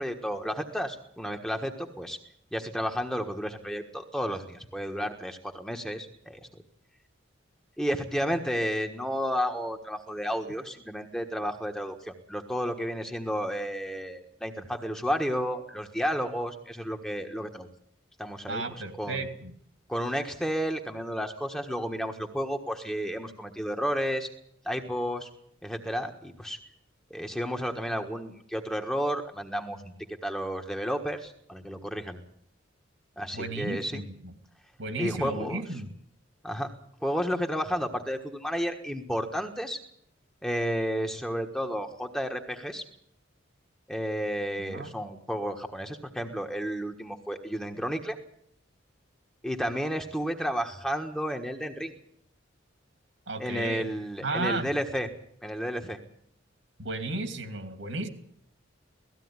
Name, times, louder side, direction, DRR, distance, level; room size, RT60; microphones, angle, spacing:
voice 1, 0.0-2.2 2.5-6.6 7.8-17.7 18.2-18.6 19.0-19.3 19.9-24.3 24.6-25.3 25.6-26.6 27.1-29.9 30.2-32.2 33.2-34.0 35.0-35.6 36.4-36.7 37.0-39.8 40.4-42.8 43.9-48.2 49.4-52.0 53.4-55.1 55.4-56.0, equal, 5° left, 3 dB, 1.4 m, -32 dB
voice 2, 18.5-19.5 33.3-34.3 34.8-35.9 44.6-44.9 53.3-53.8 54.2-54.7 56.8-58.1, right 2 dB, 65° right, 8 dB, 2.7 m, -33 dB
18.0 x 15.5 x 9.7 m, 0.69 s
head